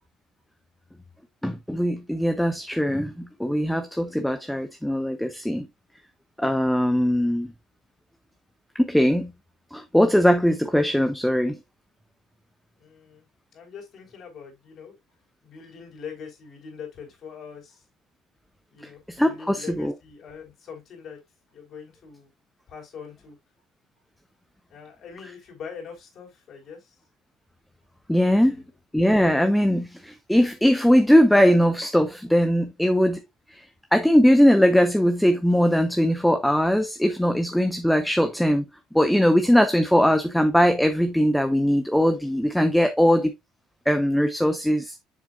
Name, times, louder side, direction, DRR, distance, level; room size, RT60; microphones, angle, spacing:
voice 1, 1.4-5.7 6.4-7.5 8.8-9.3 9.7-11.6 19.1-19.9 28.1-28.6 28.9-33.2 33.5-33.6 33.9-38.7 38.9-43.3 43.9-45.0, equal, 5° left, 0.8 m, -20 dB
voice 2, 12.7-13.2 13.5-15.0 15.4-17.8 18.7-21.2 21.5-22.3 22.7-23.4 24.7-26.9 28.2-28.6, left 6 dB, 45° left, 4.5 m, -42 dB
7.4 x 7.2 x 2.5 m
figure-of-eight pair, 60°, 0 cm